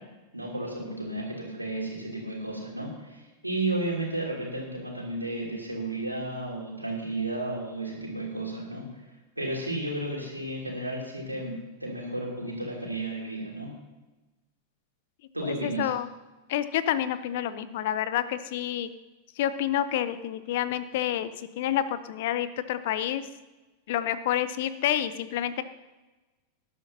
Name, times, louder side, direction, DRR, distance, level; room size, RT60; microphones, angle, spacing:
voice 1, 0.3-8.9 9.4-13.7 15.3-15.9, right 2 dB, 85° right, -2 dB, 3.1 m, -33 dB
voice 2, 15.4-16.1 16.5-18.9 19.4-23.2 23.9-25.6, left 11 dB, 50° left, 14 dB, 0.7 m, -28 dB
19.0 x 11.0 x 2.8 m, 1.1 s
figure-of-eight pair, 90°, 0 cm